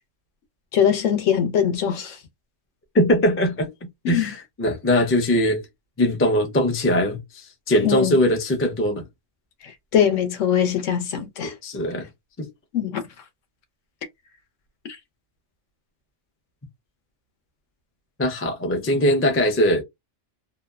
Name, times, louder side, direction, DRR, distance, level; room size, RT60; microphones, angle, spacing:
voice 1, 0.7-2.2 4.0-4.3 7.8-8.2 9.9-11.5 12.7-13.0, left 8 dB, 70° left, 1.0 m, -21 dB
voice 2, 2.9-5.6 6.0-9.0 11.4-12.1 12.4-12.5 18.2-19.8, equal, 20° left, 0.3 m, -21 dB
2.8 x 2.0 x 2.3 m
omnidirectional pair, 1.3 m